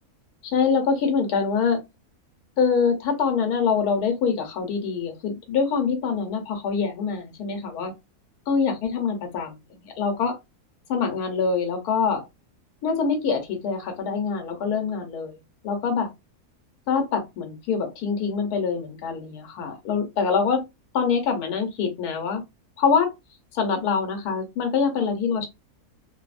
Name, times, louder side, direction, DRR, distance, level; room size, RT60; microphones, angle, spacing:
voice 1, 0.4-1.8 2.6-7.9 8.5-10.3 10.9-12.2 12.8-16.1 16.9-20.6 20.9-22.4 22.8-23.1 23.5-25.5, left 5 dB, 75° left, 1.2 m, -25 dB
3.1 x 2.0 x 2.3 m
omnidirectional pair, 1.7 m